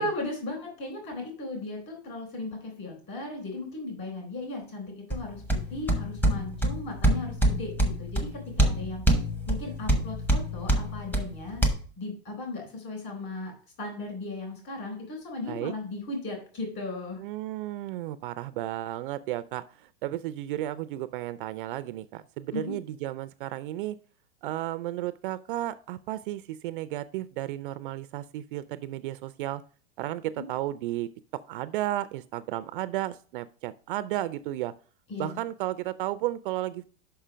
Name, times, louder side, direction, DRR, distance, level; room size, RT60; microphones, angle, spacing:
voice 1, 0.0-9.0 9.5-11.6 12.0-17.2 22.5-22.8 30.4-30.5 35.1-35.4, left 2 dB, 35° left, 2 dB, 3.8 m, -36 dB
sound 1, 5.1-11.7, right 1 dB, 5° left, 0.9 m, -26 dB
voice 2, 17.2-24.0 24.4-29.6 30.0-34.7 35.2-36.8, right 14 dB, 50° right, 15 dB, 0.4 m, -33 dB
5.6 x 5.6 x 4.9 m, 0.42 s
supercardioid pair, 150°, 33 cm